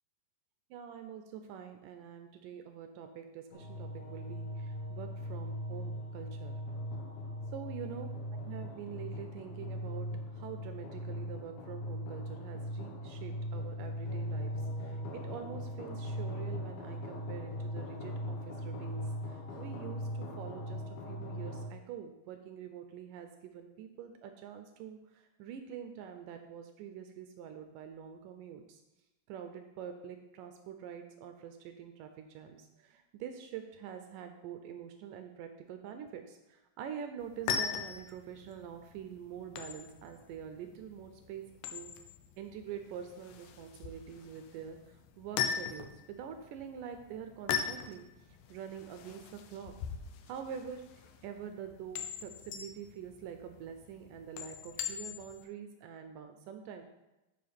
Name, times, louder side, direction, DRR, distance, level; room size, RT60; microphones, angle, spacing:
voice 1, 0.7-6.6 7.5-8.1 8.5-14.6 14.8-28.8 29.3-41.4 41.7-41.9 42.4-48.1 48.5-49.8 50.3-56.8, right 8 dB, 80° right, 6 dB, 2.0 m, -46 dB
sound 1, 3.5-21.7, equal, 65° left, 1.9 m, -39 dB
sound 2, 37.2-55.4, left 7 dB, 85° left, 1.8 m, -40 dB
9.2 x 6.9 x 3.4 m, 0.99 s
omnidirectional pair, 4.2 m